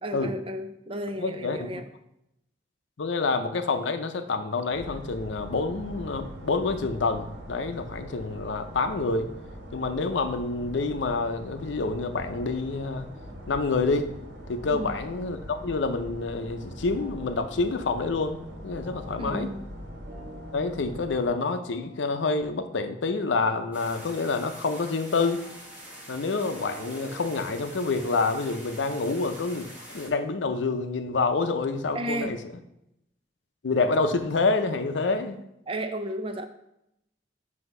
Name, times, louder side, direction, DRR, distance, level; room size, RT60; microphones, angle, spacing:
voice 1, 0.0-1.8 14.7-15.0 19.2-19.7 31.9-32.4 35.7-36.5, right 1 dB, 30° right, 8 dB, 0.5 m, -33 dB
voice 2, 1.2-1.8 3.0-9.3 9.7-13.1 13.5-14.1 14.5-18.4 18.6-19.5 20.5-25.4 26.1-32.4 33.6-35.4, left 3 dB, 85° left, 8 dB, 0.6 m, -27 dB
sound 1, 4.7-21.3, equal, 75° right, 1.3 m, -42 dB
sound 2, 16.8-28.3, right 1 dB, 55° right, 1.2 m, -50 dB
sound 3, 23.7-30.1, equal, 10° right, 1.4 m, -45 dB
7.9 x 2.8 x 5.3 m, 0.83 s
head